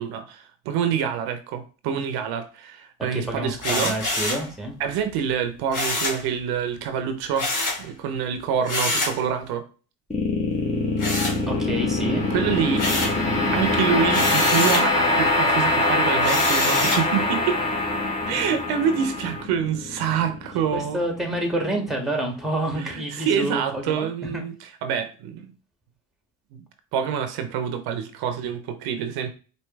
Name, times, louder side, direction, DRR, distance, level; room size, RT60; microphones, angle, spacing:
voice 1, 0.0-3.9 4.8-7.5 7.8-9.6 12.3-13.1 13.5-17.6 18.3-21.0 22.7-25.5 26.9-29.3, right 8 dB, 85° right, 9 dB, 0.7 m, -26 dB
voice 2, 3.1-4.8 11.5-12.2 18.3-18.4 20.7-24.1 24.3-24.4, right 1 dB, ahead, 2 dB, 1.7 m, -28 dB
sound 1, 3.6-4.5 5.7-6.2 7.4-7.8 8.7-9.2 11.0-11.8 12.2-13.2 14.1-14.9 16.2-17.1, left 2 dB, 55° left, 2.1 m, -26 dB
sound 2, 10.1-21.3, left 2 dB, 20° left, 1.6 m, -23 dB
4.6 x 2.9 x 3.2 m, 0.36 s
supercardioid pair, 75°, 37 cm